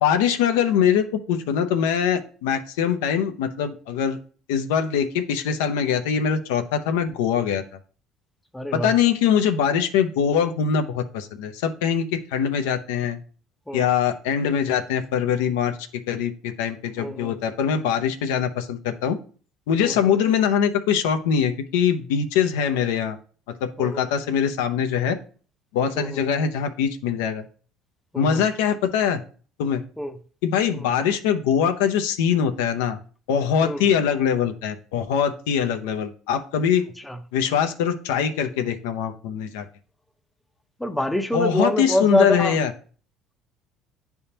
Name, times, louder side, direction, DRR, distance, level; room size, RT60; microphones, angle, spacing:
voice 1, 0.0-4.2 4.5-7.6 8.7-13.2 13.7-15.7 16.1-19.2 19.7-23.2 23.8-25.1 25.7-27.4 28.2-29.2 29.6-29.8 30.4-33.0 33.3-36.8 37.3-39.6 41.3-42.7, left 8 dB, 90° left, 0.6 m, -22 dB
voice 2, 8.5-8.9 13.7-13.9 17.0-17.4 19.8-20.1 23.8-24.1 26.0-26.3 28.1-28.5 30.0-30.2 30.8-31.0 33.6-33.9 37.0-37.2 40.8-42.7, left 1 dB, 5° left, 0.6 m, -26 dB
9.5 x 3.5 x 2.8 m
supercardioid pair, 85°, 0 cm